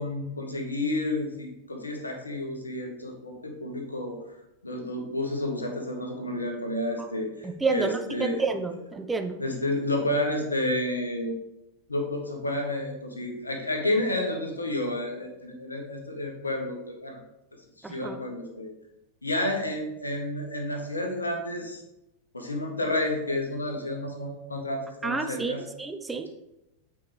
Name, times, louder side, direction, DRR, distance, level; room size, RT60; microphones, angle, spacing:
voice 1, 0.0-4.2 4.6-7.3 7.7-8.4 9.4-11.4 11.9-17.2 17.8-18.7 19.2-21.8 22.3-25.6, left 1 dB, 80° left, 2 dB, 1.4 m, -30 dB
voice 2, 7.4-9.4 17.8-18.2 25.0-25.5 25.8-26.3, right 4 dB, 10° right, 6 dB, 0.7 m, -29 dB
8.7 x 4.8 x 3.5 m, 0.90 s
figure-of-eight pair, 90°, 0 cm